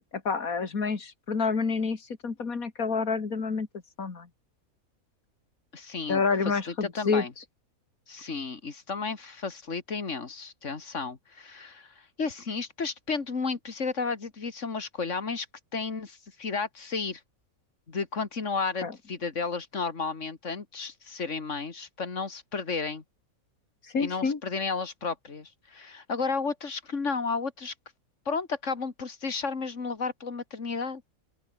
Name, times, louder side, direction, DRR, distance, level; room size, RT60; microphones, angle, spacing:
voice 1, 0.0-3.7 4.0-4.3 6.1-7.2 18.8-18.9 23.9-24.4, left 5 dB, 75° left, 3.0 m, -28 dB
voice 2, 5.7-6.2 6.7-7.3 8.1-15.5 15.7-17.2 17.9-23.0 24.0-27.7 28.3-31.0, left 4 dB, 55° left, 2.6 m, -33 dB
open air
omnidirectional pair, 1.5 m